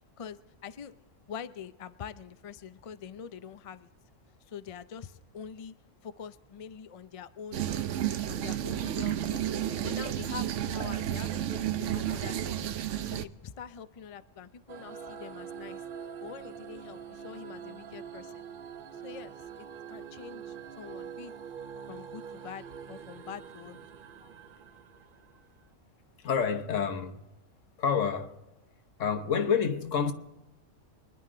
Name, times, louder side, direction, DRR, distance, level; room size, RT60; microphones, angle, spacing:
voice 1, 0.2-0.9 1.3-3.9 4.5-5.7 6.0-7.6 8.3-9.5 9.8-12.7 13.1-15.8 16.2-18.4 18.9-21.3 21.9-23.9, left 7 dB, 45° left, 0.4 m, -45 dB
sound 1, 7.5-13.2, right 11 dB, 75° right, 1.0 m, -31 dB
sound 2, 14.7-25.6, right 7 dB, 50° right, 0.8 m, -44 dB
voice 2, 26.2-27.3 27.8-28.4 29.0-30.1, left 6 dB, 80° left, 1.4 m, -28 dB
24.0 x 11.0 x 3.8 m
omnidirectional pair, 1.3 m